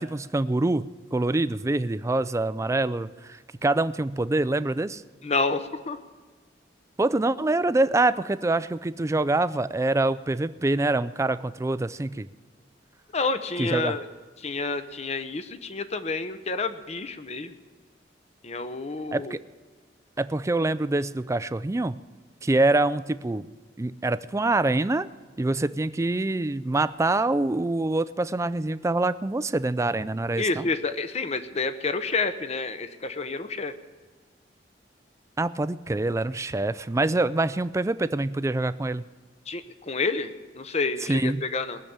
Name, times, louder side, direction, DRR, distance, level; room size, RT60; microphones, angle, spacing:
voice 1, 0.0-5.0 7.0-12.3 13.6-14.0 19.1-19.4 20.2-22.0 22.4-23.5 23.8-25.1 25.4-30.7 35.4-39.0 41.0-41.4, right 2 dB, 15° right, 15 dB, 0.4 m, -25 dB
voice 2, 5.2-6.0 13.1-14.0 14.4-17.6 18.4-19.3 30.4-33.7 39.5-40.3 40.5-41.8, left 3 dB, 40° left, 10 dB, 0.9 m, -29 dB
20.5 x 6.9 x 8.8 m, 1.4 s
head